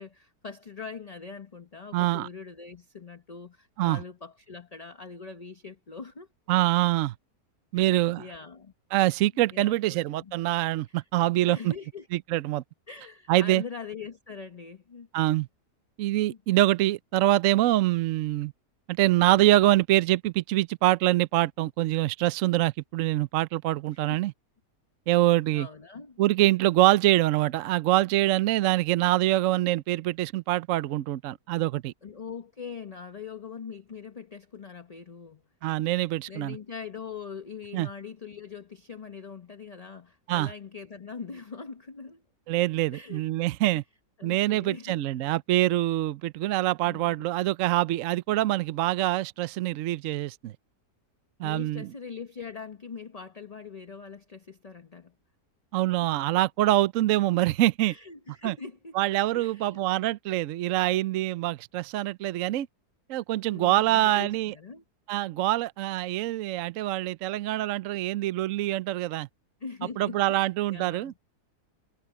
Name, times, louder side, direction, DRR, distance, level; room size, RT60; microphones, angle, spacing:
voice 1, 0.0-6.3 7.7-8.7 9.5-10.3 10.9-11.1 11.5-12.1 12.9-15.1 16.3-16.4 23.9-24.3 25.1-25.2 25.5-26.2 32.0-35.4 36.3-42.2 42.9-43.2 44.2-45.0 46.8-47.3 51.4-55.1 56.0-56.1 57.9-59.0 59.3-59.9 63.5-64.8 69.6-71.1, left 5 dB, 30° left, 0.8 m, -42 dB
voice 2, 1.9-2.3 3.8-4.0 6.5-7.1 7.7-8.2 8.9-11.7 12.1-12.6 13.3-13.6 15.1-15.5 16.0-18.5 18.9-24.3 25.1-25.7 26.2-31.9 35.6-36.6 37.7-37.9 40.3-40.5 42.5-43.8 44.2-50.5 51.4-51.9 55.7-57.9 58.4-58.5 58.9-62.7 63.1-64.5 65.1-69.3 70.0-71.2, right 15 dB, 65° right, 0.8 m, -25 dB
omnidirectional pair, 1.7 m